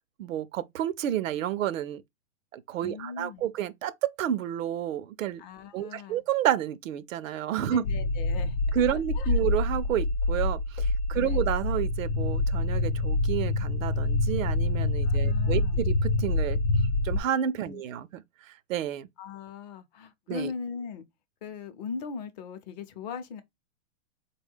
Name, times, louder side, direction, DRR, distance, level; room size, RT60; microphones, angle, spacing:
voice 1, 0.2-2.0 2.5-5.4 5.7-7.8 8.7-16.6 17.0-18.2 18.7-19.1 20.3-20.5, right 10 dB, 85° right, 0.5 m, -30 dB
voice 2, 2.8-3.5 5.4-6.2 7.7-8.6 8.9-9.4 11.1-11.4 15.0-15.9 17.6-17.8 19.2-21.0 21.4-23.4, left 5 dB, 35° left, 0.6 m, -39 dB
sound 1, 7.8-17.2, left 2 dB, 85° left, 0.7 m, -26 dB
3.9 x 2.2 x 3.4 m
hypercardioid pair, 150°, 39 cm